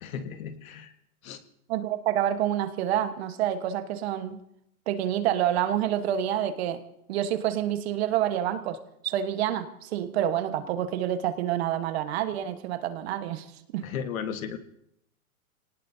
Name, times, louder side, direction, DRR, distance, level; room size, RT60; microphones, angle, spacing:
voice 1, 0.0-0.9 1.2-1.4 13.8-14.6, left 7 dB, 65° left, 9 dB, 1.6 m, -35 dB
voice 2, 1.7-4.4 4.9-6.8 7.1-8.8 9.0-13.4 13.7-13.8, right 11 dB, 45° right, 9 dB, 1.3 m, -28 dB
27.0 x 18.5 x 2.7 m, 0.76 s
hypercardioid pair, 155°, 45 cm